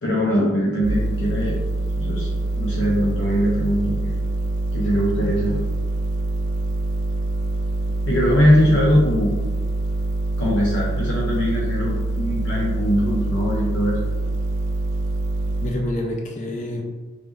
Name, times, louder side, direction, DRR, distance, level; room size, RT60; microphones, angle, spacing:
voice 1, 0.0-1.5 1.9-2.3 2.6-4.1 4.7-5.6 8.1-9.3 10.4-14.0, equal, 65° left, -5 dB, 0.8 m, -21 dB
sound 1, 0.8-15.7, right 2 dB, 70° right, 0.7 m, -25 dB
voice 2, 8.6-9.0 15.6-16.8, left 1 dB, 35° left, 1 dB, 0.4 m, -28 dB
4.9 x 3.4 x 2.6 m, 1.2 s
head